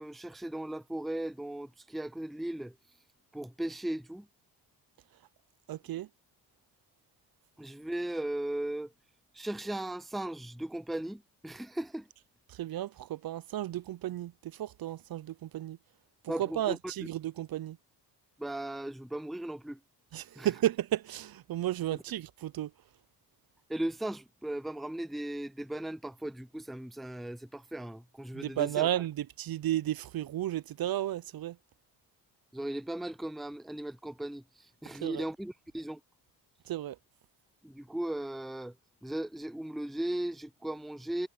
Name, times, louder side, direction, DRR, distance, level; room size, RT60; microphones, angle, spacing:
voice 1, 0.0-2.7 3.3-4.3 7.6-8.9 9.3-12.1 16.3-16.9 18.4-19.8 20.4-20.5 21.9-22.0 23.7-28.9 32.5-36.0 37.6-38.8 39.0-41.3, right 1 dB, ahead, 0.6 m, -37 dB
voice 2, 5.7-6.1 12.5-15.8 16.2-17.8 20.1-22.7 28.3-31.6 35.0-35.2 36.7-37.0, right 13 dB, 55° right, 0.7 m, -33 dB
supercardioid pair, 60°, 43 cm